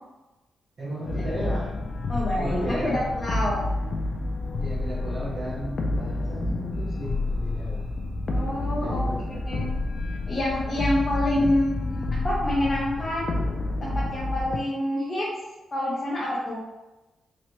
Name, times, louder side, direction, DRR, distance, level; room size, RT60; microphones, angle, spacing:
voice 1, 0.8-1.7 2.4-3.1 4.6-7.8 8.8-9.7 11.1-11.2, equal, 50° right, -10 dB, 1.0 m, -34 dB
sound 1, 1.0-14.6, left 2 dB, 50° left, 0.4 m, -29 dB
voice 2, 2.1-3.6 8.3-9.0 9.5-9.7 10.3-13.4 13.8-15.3 15.7-16.6, left 1 dB, 30° left, -7 dB, 0.9 m, -27 dB
3.0 x 2.8 x 3.0 m, 1.0 s
cardioid pair, 110°, 0 cm